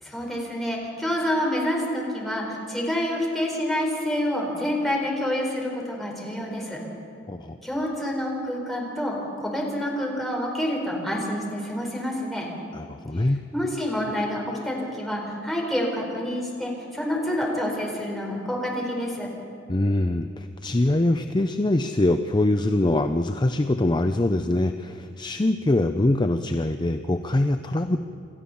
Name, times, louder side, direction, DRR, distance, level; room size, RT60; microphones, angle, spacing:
voice 1, 0.0-6.8 7.6-12.5 13.5-19.3, left 1 dB, ahead, -2 dB, 4.3 m, -28 dB
voice 2, 7.3-7.6 12.7-13.4 19.7-28.0, left 1 dB, 25° left, 8 dB, 0.6 m, -23 dB
28.5 x 13.0 x 7.1 m, 2.7 s
head